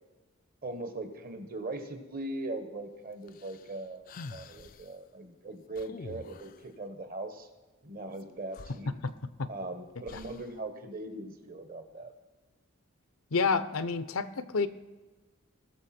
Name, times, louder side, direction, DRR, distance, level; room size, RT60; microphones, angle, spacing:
voice 1, 0.6-7.5 7.8-8.9 9.5-12.1, right 2 dB, 45° right, 7 dB, 1.3 m, -40 dB
sound 1, 3.3-4.9 5.8-6.7 8.2-8.3 8.5-9.5 10.1-10.6, left 4 dB, 40° left, 0.4 m, -47 dB
voice 2, 13.3-14.7, left 4 dB, 85° left, 12 dB, 0.7 m, -29 dB
19.5 x 6.9 x 4.4 m, 1.2 s
head